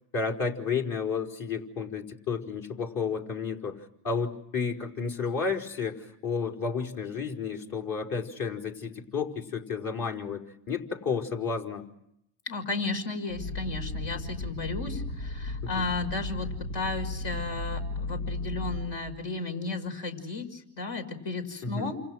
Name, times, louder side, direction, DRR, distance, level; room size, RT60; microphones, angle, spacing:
voice 1, 0.1-11.9 15.6-15.9 21.6-21.9, left 5 dB, 45° left, 2 dB, 5.0 m, -32 dB
voice 2, 12.5-22.0, left 3 dB, 65° left, 5 dB, 5.9 m, -34 dB
sound 1, 13.3-19.1, left 2 dB, 85° left, 1.8 m, -35 dB
29.5 x 27.5 x 6.4 m, 0.79 s
hypercardioid pair, 75°, 46 cm